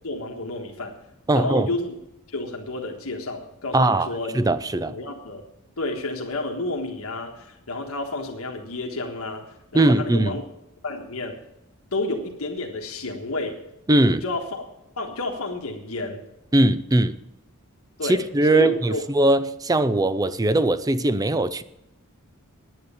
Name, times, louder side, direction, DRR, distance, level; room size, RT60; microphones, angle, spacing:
voice 1, 0.0-0.9 1.3-1.9 2.3-4.4 4.8-5.4 5.8-10.4 10.8-11.4 11.9-13.6 14.2-14.7 15.0-16.2 18.0-18.2 18.5-19.0, left 2 dB, 85° left, 1.6 m, -30 dB
voice 2, 1.3-1.7 3.7-4.1 4.3-5.0 9.7-10.4 13.9-14.2 16.5-17.2 18.0-21.6, right 1 dB, 15° right, 0.5 m, -20 dB
9.5 x 9.4 x 6.9 m
head